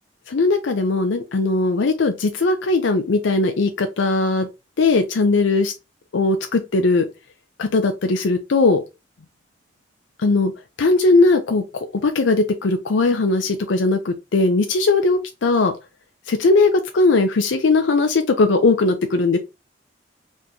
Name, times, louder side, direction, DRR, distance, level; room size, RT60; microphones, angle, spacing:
voice 1, 0.3-4.5 4.8-5.7 6.1-7.1 7.6-8.8 10.2-10.5 10.8-15.7 16.3-19.4, left 3 dB, 85° left, 0.5 m, -19 dB
4.2 x 3.0 x 2.6 m
head